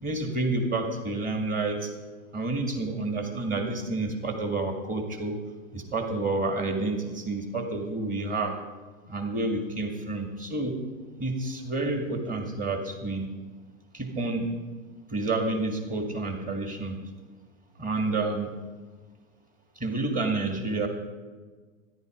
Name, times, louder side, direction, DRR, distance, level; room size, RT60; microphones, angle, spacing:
voice 1, 0.0-1.9 2.3-5.4 5.7-8.6 9.1-10.8 11.2-13.4 13.9-14.5 15.1-17.0 17.8-18.5 19.8-20.9, right 2 dB, 20° right, 4 dB, 2.2 m, -29 dB
13.5 x 11.0 x 5.2 m, 1.4 s
hypercardioid pair, 110°, 42 cm